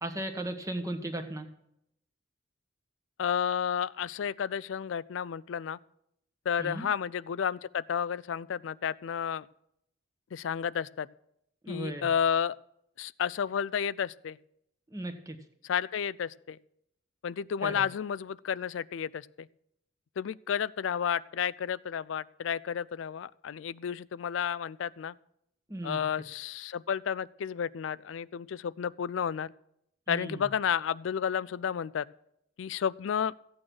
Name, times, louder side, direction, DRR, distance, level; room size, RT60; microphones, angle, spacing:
voice 1, 0.0-1.5 6.6-6.9 11.6-12.1 14.9-15.4 17.6-17.9 25.7-26.0 30.1-30.5, right 1 dB, 15° right, 7 dB, 1.3 m, -36 dB
voice 2, 3.2-5.8 6.5-9.5 10.3-11.1 11.7-12.5 13.0-14.4 15.6-16.6 17.2-19.5 20.2-25.1 25.8-29.5 30.1-32.0 32.6-33.3, left 7 dB, 90° left, 18 dB, 0.4 m, -31 dB
14.5 x 8.7 x 6.3 m, 0.77 s
head